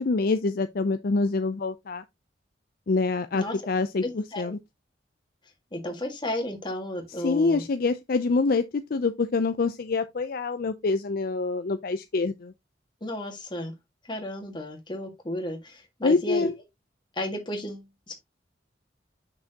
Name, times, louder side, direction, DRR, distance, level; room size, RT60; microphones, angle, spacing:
voice 1, 0.0-2.0 2.9-4.6 7.2-12.5 16.0-16.5, left 3 dB, 50° left, 0.5 m, -26 dB
voice 2, 4.0-4.5 5.7-7.6 13.0-13.7 14.1-16.5 17.1-18.1, left 1 dB, 25° left, 1.7 m, -33 dB
6.7 x 6.1 x 2.8 m
head